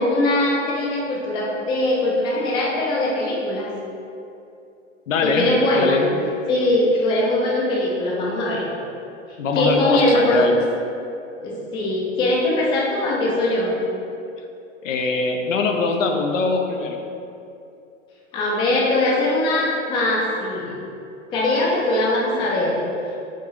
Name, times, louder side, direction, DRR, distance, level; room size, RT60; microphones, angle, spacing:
voice 1, 0.0-3.7 5.2-6.0 6.5-8.6 9.6-10.5 11.4-13.7 18.3-20.8 21.3-22.8, left 1 dB, 15° left, -3 dB, 0.3 m, -21 dB
voice 2, 5.1-6.1 9.4-10.6 14.8-17.0, left 4 dB, 80° left, 3 dB, 0.5 m, -22 dB
4.6 x 2.3 x 2.9 m, 2.7 s
hypercardioid pair, 105°, 38 cm